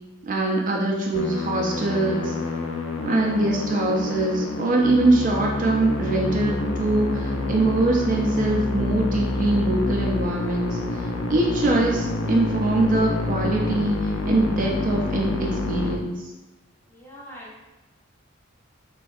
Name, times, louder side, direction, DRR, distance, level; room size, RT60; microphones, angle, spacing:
voice 1, 0.2-2.3 3.0-16.3, right 2 dB, 40° right, 0 dB, 0.4 m, -23 dB
Musical instrument, 1.1-16.0, left 2 dB, 90° left, 0.4 m, -28 dB
voice 2, 16.9-17.6, equal, 10° left, -5 dB, 0.5 m, -43 dB
3.0 x 2.6 x 2.4 m, 1.1 s
head